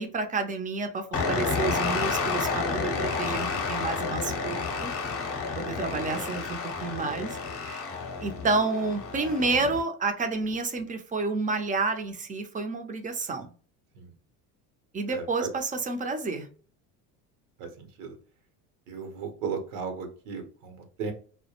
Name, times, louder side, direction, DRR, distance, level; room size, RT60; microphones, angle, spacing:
voice 1, 0.0-4.9 5.6-7.9 8.2-13.5 14.9-16.5, right 3 dB, 20° right, 6 dB, 0.5 m, -30 dB
sound 1, 1.1-9.8, left 4 dB, 35° left, 0.7 m, -30 dB
voice 2, 3.2-3.6 5.9-6.2 13.9-14.1 15.1-15.5 17.6-18.2 18.9-21.1, right 5 dB, 80° right, 6 dB, 0.8 m, -36 dB
2.2 x 2.1 x 2.8 m, 0.43 s
supercardioid pair, 85°, 42 cm